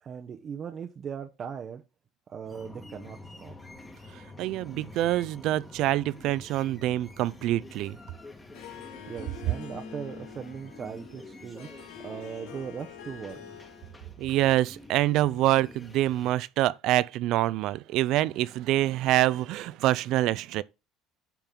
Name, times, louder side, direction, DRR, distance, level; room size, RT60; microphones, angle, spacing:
voice 1, 0.0-1.8 2.3-3.5 9.1-11.7 12.0-13.4, right 7 dB, 30° right, 0.7 m, -39 dB
sound 1, 2.4-16.3, left 2 dB, 15° left, 1.5 m, -47 dB
voice 2, 4.4-8.0 14.2-20.6, right 15 dB, 60° right, 0.4 m, -26 dB
Harp, 8.5-14.0, left 8 dB, 85° left, 1.8 m, -46 dB
9.2 x 5.3 x 3.7 m
cardioid pair, 150°, 0 cm